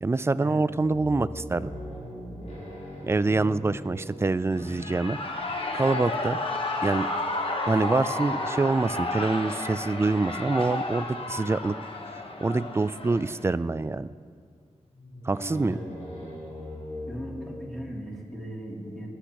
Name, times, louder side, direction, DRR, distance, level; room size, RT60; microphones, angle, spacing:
voice 1, 0.0-1.7 3.0-5.2 5.7-6.4 6.8-7.1 7.7-11.7 12.4-14.1 15.2-15.8, right 3 dB, 20° right, 15 dB, 0.3 m, -25 dB
sound 1, 0.8-5.8 13.4-14.0 14.3-14.4 14.9-18.3, left 1 dB, 75° left, 3.6 m, -40 dB
Shout / Cheering, 4.5-13.5, left 2 dB, 50° left, 1.1 m, -32 dB
voice 2, 17.1-19.1, equal, 5° left, -5 dB, 2.9 m, -38 dB
24.5 x 8.2 x 3.0 m, 2.1 s
wide cardioid pair, 90°, 12 cm